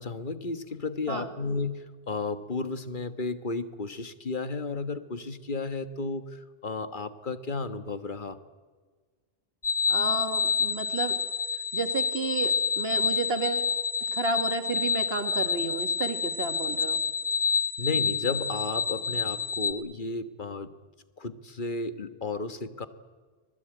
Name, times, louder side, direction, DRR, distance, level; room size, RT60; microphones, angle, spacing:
voice 1, 0.0-8.4 17.8-20.7 21.2-22.9, left 3 dB, 50° left, 11 dB, 1.5 m, -33 dB
sound 1, 9.6-19.7, left 5 dB, 30° left, 1.5 m, -28 dB
voice 2, 9.9-11.2 11.7-13.7 14.0-17.0, right 3 dB, 70° right, 8 dB, 2.3 m, -32 dB
25.0 x 20.0 x 9.0 m, 1.5 s
omnidirectional pair, 1.1 m